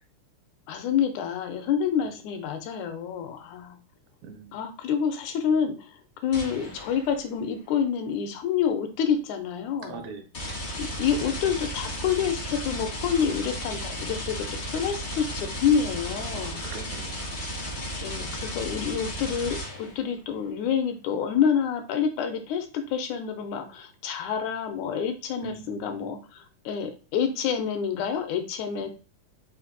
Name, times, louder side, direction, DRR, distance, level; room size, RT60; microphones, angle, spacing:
voice 1, 0.7-3.8 4.5-10.0 10.8-16.6 18.0-28.9, left 7 dB, 85° left, 7 dB, 2.1 m, -28 dB
voice 2, 4.2-4.6 9.8-10.3 16.3-17.3 25.4-26.1, right 5 dB, 80° right, 6 dB, 2.0 m, -42 dB
sound 1, 6.3-7.3 10.3-20.1, equal, 60° left, 0.7 m, -34 dB
5.0 x 2.6 x 3.9 m, 0.34 s
omnidirectional pair, 3.4 m